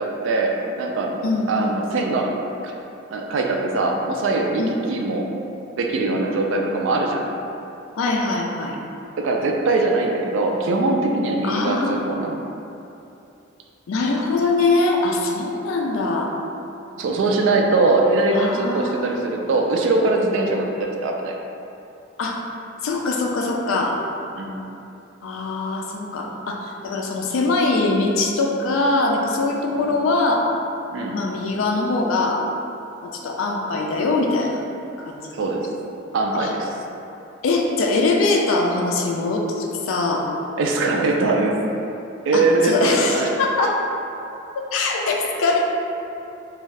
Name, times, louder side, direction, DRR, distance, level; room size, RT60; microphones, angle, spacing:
voice 1, 0.0-1.2 1.5-2.3 2.6-2.7 3.1-5.3 5.8-7.3 9.2-12.4 17.0-21.3 24.3-24.6 29.7-29.9 30.9-31.2 35.3-35.6 36.1-36.7 40.6-41.6 42.3-43.4, right 2 dB, 65° right, 1 dB, 0.3 m, -21 dB
voice 2, 1.2-1.8 4.6-4.8 8.0-8.8 11.4-12.0 13.9-16.3 18.3-19.2 22.2-22.4 22.8-24.0 25.2-30.5 31.1-32.4 33.0-34.6 35.0-35.3 36.3-36.5 37.4-40.3 42.3-43.8 44.7-45.6, left 3 dB, 80° left, 1 dB, 0.4 m, -22 dB
2.6 x 2.3 x 3.1 m, 2.8 s
head